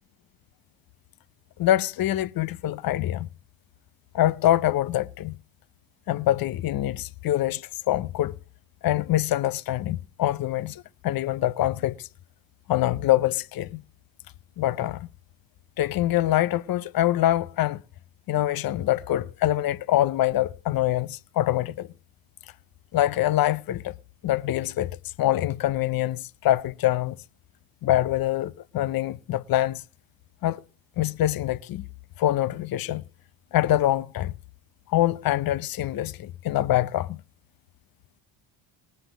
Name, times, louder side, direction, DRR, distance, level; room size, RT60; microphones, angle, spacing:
voice 1, 1.6-3.3 4.1-5.4 6.1-8.4 8.8-12.1 12.7-13.8 14.6-15.1 15.8-17.8 18.3-21.9 22.9-23.9 24.2-27.2 27.8-29.8 30.4-30.6 31.0-31.8 32.2-33.0 33.5-34.3 34.9-37.2, left 14 dB, 45° left, 0.6 m, -25 dB
19.0 x 6.8 x 8.0 m
supercardioid pair, 70°, 49 cm